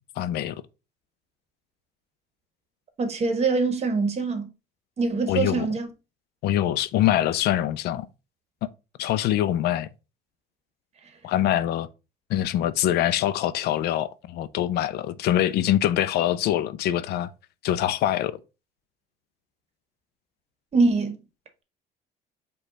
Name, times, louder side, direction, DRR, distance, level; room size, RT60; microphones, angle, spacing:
voice 1, 0.2-0.6 5.3-5.7 6.4-8.1 9.0-9.9 11.2-11.9 12.3-17.3 17.6-18.4, left 12 dB, 70° left, 0.4 m, -24 dB
voice 2, 3.0-4.5 5.0-5.9 20.7-21.2, right 3 dB, 40° right, 1.0 m, -23 dB
5.1 x 2.3 x 3.8 m
cardioid pair, 110°, 17 cm